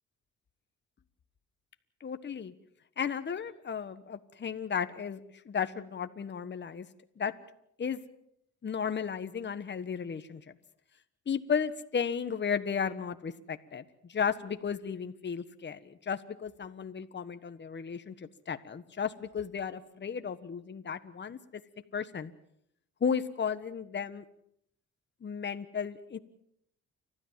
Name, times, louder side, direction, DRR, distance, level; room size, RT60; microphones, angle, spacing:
voice 1, 2.0-2.5 3.0-5.2 5.4-6.9 7.2-7.3 7.8-8.0 8.6-10.4 11.3-13.8 14.1-21.4 21.9-22.3 23.0-24.2 25.2-26.2, left 7 dB, 35° left, 10 dB, 1.4 m, -34 dB
30.0 x 13.5 x 7.5 m, 0.73 s
cardioid pair, 90°, 30 cm